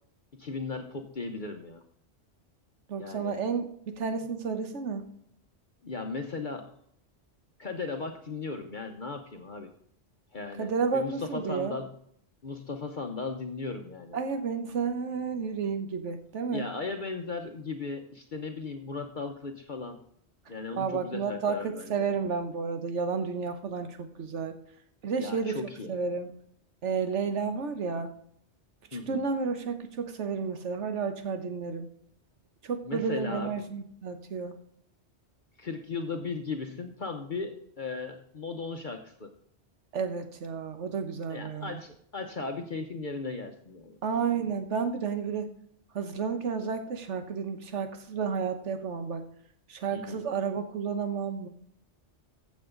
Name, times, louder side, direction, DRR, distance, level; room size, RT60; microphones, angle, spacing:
voice 1, 0.3-1.8 2.9-3.4 5.8-6.8 7.6-9.7 10.3-11.9 12.4-14.2 16.5-20.0 20.5-22.1 25.1-25.9 28.9-29.2 32.8-33.5 35.6-39.3 41.3-44.0 49.9-50.2, left 4 dB, 45° left, 5 dB, 1.0 m, -37 dB
voice 2, 2.9-5.0 10.6-11.8 14.1-16.6 20.8-24.6 25.0-25.6 25.9-26.3 26.8-28.1 29.1-31.9 32.6-34.5 39.9-41.8 44.0-45.5 45.9-49.3 49.7-51.5, right 5 dB, 85° right, 8 dB, 1.4 m, -31 dB
15.0 x 7.2 x 3.8 m, 0.68 s
omnidirectional pair, 1.2 m